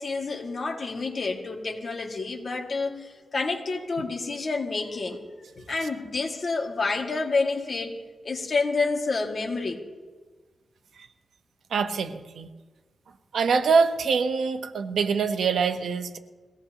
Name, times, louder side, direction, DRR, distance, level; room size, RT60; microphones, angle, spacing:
voice 1, 0.0-8.0 8.2-9.8, left 3 dB, 45° left, 1 dB, 2.1 m, -29 dB
voice 2, 11.7-12.5 13.3-16.2, right 5 dB, 90° right, 7 dB, 1.0 m, -24 dB
22.5 x 17.0 x 3.0 m, 1.4 s
wide cardioid pair, 140°, 0 cm